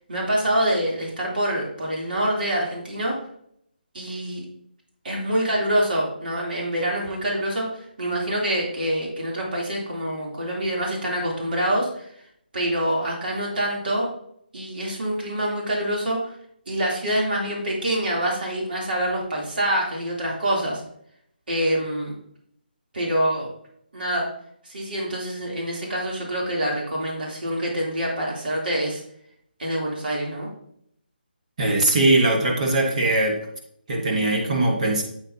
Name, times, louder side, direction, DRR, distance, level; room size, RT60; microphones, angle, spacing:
voice 1, 0.1-3.2 3.9-4.4 5.0-12.0 12.5-14.1 14.5-16.3 16.7-20.8 21.5-22.1 22.9-23.5 23.9-24.2 24.6-29.0 29.6-30.5, right 1 dB, 60° right, -3 dB, 3.2 m, -26 dB
voice 2, 31.6-33.4 33.9-35.0, right 2 dB, 40° right, 0 dB, 1.5 m, -20 dB
8.2 x 7.8 x 2.8 m, 0.69 s
hypercardioid pair, 165°, 6 cm